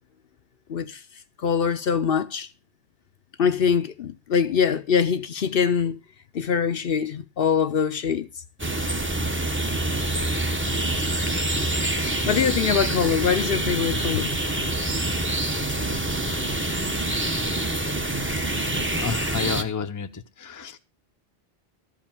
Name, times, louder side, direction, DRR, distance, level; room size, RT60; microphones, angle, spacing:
voice 1, 1.4-2.5 3.4-6.0 6.3-8.3 12.3-14.3, left 7 dB, 60° left, 0.9 m, -23 dB
sound 1, 8.6-19.6, right 1 dB, 10° right, 0.9 m, -26 dB
voice 2, 18.9-20.8, left 6 dB, 20° left, 0.6 m, -31 dB
13.0 x 5.0 x 7.3 m
omnidirectional pair, 1.1 m